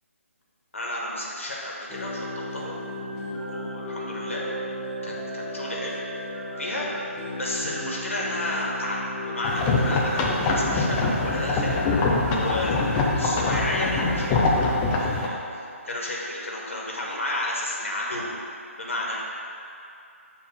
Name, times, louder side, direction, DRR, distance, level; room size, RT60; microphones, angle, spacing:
voice 1, 0.7-2.3 2.5-4.4 5.0-5.9 6.6-6.9 7.4-11.8 12.3-14.4 14.9-18.3 18.8-19.2, left 1 dB, 60° left, -4 dB, 1.5 m, -32 dB
sound 1, 1.9-14.7, equal, 10° right, 1.2 m, -35 dB
sound 2, 9.4-15.3, left 3 dB, 10° left, 0.4 m, -24 dB
6.9 x 3.4 x 6.1 m, 2.6 s
figure-of-eight pair, 145°, 8 cm